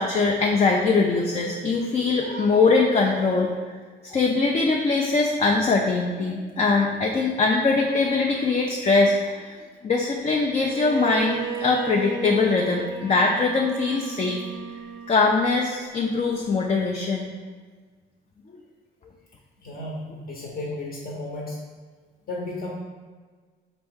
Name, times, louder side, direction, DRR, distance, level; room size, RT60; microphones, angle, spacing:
voice 1, 0.0-3.6 4.0-9.6 9.8-14.4 15.1-17.3, left 3 dB, 35° left, 0 dB, 0.4 m, -22 dB
Bowed string instrument, 10.6-15.7, right 4 dB, 75° right, 0.5 m, -35 dB
voice 2, 19.6-21.6 22.3-22.7, left 2 dB, 50° left, -3 dB, 0.9 m, -33 dB
4.4 x 2.9 x 3.5 m, 1.4 s
cardioid pair, 90°, 20 cm